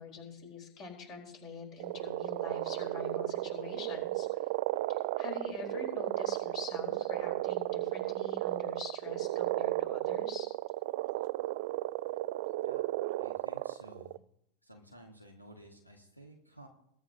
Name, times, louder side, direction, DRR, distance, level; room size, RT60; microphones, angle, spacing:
voice 1, 0.0-4.4 4.9-10.5, left 5 dB, 35° left, 1 dB, 4.1 m, -45 dB
sound 1, 1.8-14.2, right 17 dB, 50° right, 0.3 m, -34 dB
voice 2, 13.2-14.2 14.6-16.7, right 1 dB, 90° left, 2 dB, 1.7 m, -54 dB
22.0 x 11.0 x 2.8 m, 0.75 s
figure-of-eight pair, 90°, 0 cm